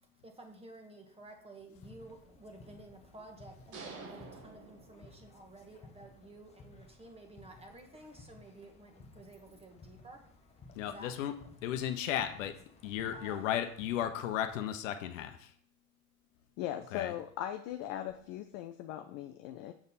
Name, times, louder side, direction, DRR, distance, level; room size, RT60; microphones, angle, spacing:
voice 1, 0.0-11.1 13.1-13.4, right 2 dB, 15° right, 4 dB, 1.4 m, -53 dB
sound 1, 1.7-14.6, left 3 dB, 15° left, 0.8 m, -57 dB
sound 2, 3.7-5.5, right 4 dB, 30° right, 1.4 m, -48 dB
voice 2, 10.7-15.5 16.9-17.1, left 10 dB, 60° left, 8 dB, 0.9 m, -35 dB
voice 3, 16.6-19.7, left 11 dB, 35° left, 8 dB, 0.5 m, -39 dB
7.1 x 5.1 x 4.1 m, 0.63 s
hypercardioid pair, 95°, 44 cm